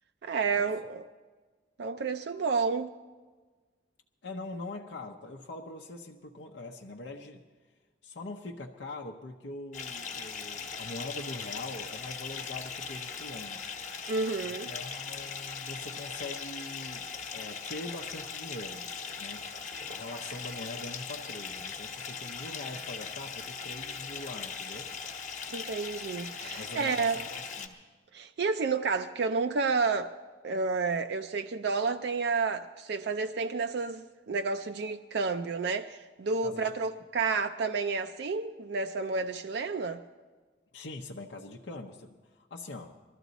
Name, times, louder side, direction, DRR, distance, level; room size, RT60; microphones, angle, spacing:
voice 1, 0.2-1.0 1.8-2.9 14.1-14.7 25.5-27.2 28.1-30.2 30.4-40.0, right 4 dB, 60° right, 0.4 m, -30 dB
voice 2, 4.2-7.4 8.0-13.7 14.4-18.9 19.2-19.5 19.9-24.9 26.4-27.8 36.4-36.7 40.7-42.9, left 2 dB, 70° left, 0.7 m, -43 dB
Bathtub (filling or washing) / Fill (with liquid), 9.7-27.7, left 5 dB, 40° left, 1.1 m, -39 dB
20.5 x 13.5 x 4.0 m
head